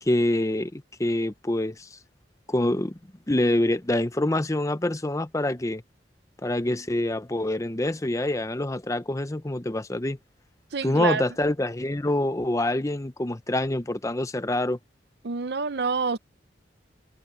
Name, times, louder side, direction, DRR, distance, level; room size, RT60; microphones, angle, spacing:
voice 1, 0.0-2.0 2.5-3.0 3.3-5.8 6.4-10.2 10.8-14.8, left 1 dB, 20° left, 0.7 m, -26 dB
voice 2, 10.7-11.2 15.2-16.2, right 4 dB, 65° right, 0.7 m, -27 dB
head